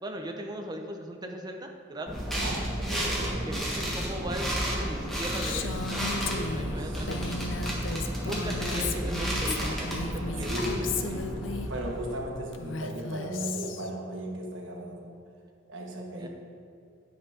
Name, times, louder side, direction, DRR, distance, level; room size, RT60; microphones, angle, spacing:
voice 1, 0.0-2.2 3.5-7.4 8.2-10.8 11.0-11.2 16.2-16.3, right 1 dB, 20° right, 3 dB, 0.8 m, -38 dB
sound 1, 2.1-12.3, equal, ahead, 1.6 m, -32 dB
voice 2, 2.3-3.5 6.7-8.2 8.5-9.3 10.3-11.1 11.7-15.2 15.7-16.3, right 1 dB, 75° right, 0 dB, 1.5 m, -37 dB
Female speech woman speaking, 5.3-11.7 12.5-13.9, left 4 dB, 70° left, 0.6 m, -35 dB
9.7 x 6.0 x 5.1 m, 2.4 s
head